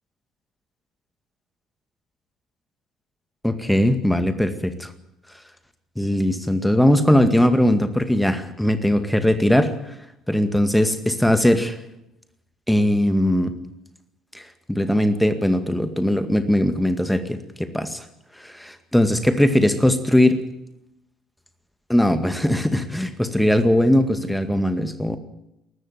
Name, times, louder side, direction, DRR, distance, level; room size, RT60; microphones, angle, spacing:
voice 1, 3.4-4.9 6.0-9.7 10.3-11.8 12.7-13.5 14.3-14.4 14.7-18.0 18.4-20.4 21.9-25.2, left 1 dB, 5° left, 10 dB, 2.1 m, -20 dB
19.5 x 14.5 x 9.3 m, 0.88 s
figure-of-eight pair, 55°, 0 cm